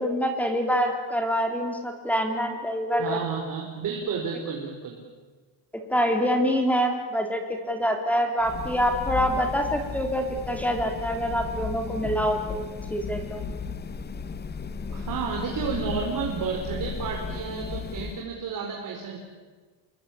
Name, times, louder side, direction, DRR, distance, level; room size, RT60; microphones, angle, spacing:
voice 1, 0.0-3.2 5.7-12.6 12.9-13.4, equal, 5° left, 4 dB, 3.5 m, -26 dB
voice 2, 3.0-5.0 14.9-19.2, right 6 dB, 50° right, 0 dB, 4.6 m, -31 dB
sound 1, 8.4-18.2, left 5 dB, 25° left, 1.1 m, -35 dB
28.5 x 22.5 x 8.6 m, 1.4 s
cardioid pair, 155°, 42 cm